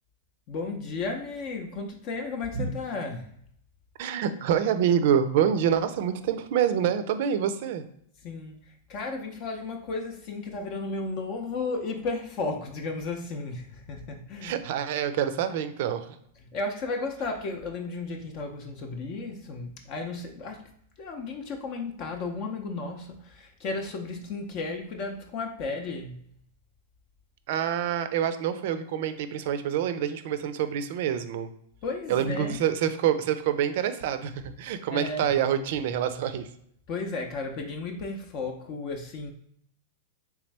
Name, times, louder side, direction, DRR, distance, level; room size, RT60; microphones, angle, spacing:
voice 1, 0.5-3.3 8.2-14.6 16.4-20.7 21.0-26.2 31.8-32.6 34.9-35.3 36.9-39.3, left 3 dB, 45° left, 3 dB, 0.5 m, -34 dB
voice 2, 4.0-7.8 14.4-16.2 27.5-31.5 32.1-36.5, right 9 dB, 60° right, 11 dB, 0.4 m, -26 dB
3.4 x 3.0 x 3.3 m, 0.67 s
hypercardioid pair, 120°, 0 cm